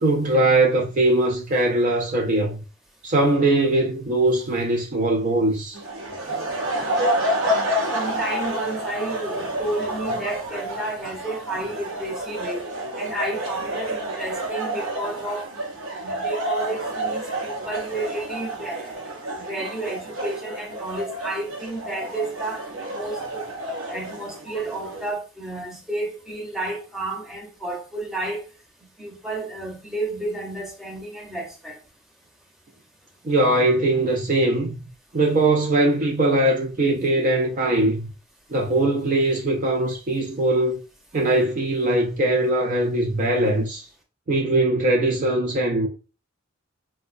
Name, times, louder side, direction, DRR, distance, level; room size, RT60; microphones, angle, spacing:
voice 1, 0.0-2.6 3.0-5.8 33.2-34.8 35.1-38.1 38.5-40.8 41.1-43.8 44.3-45.9, right 2 dB, 40° right, 0.4 m, -21 dB
sound 1, 5.7-25.1, right 1 dB, 70° right, 0.7 m, -29 dB
voice 2, 7.9-12.6 13.0-15.6 16.0-19.0 19.4-23.5 23.9-28.4 29.0-31.8, right 2 dB, ahead, 0.8 m, -31 dB
4.6 x 2.1 x 2.5 m
head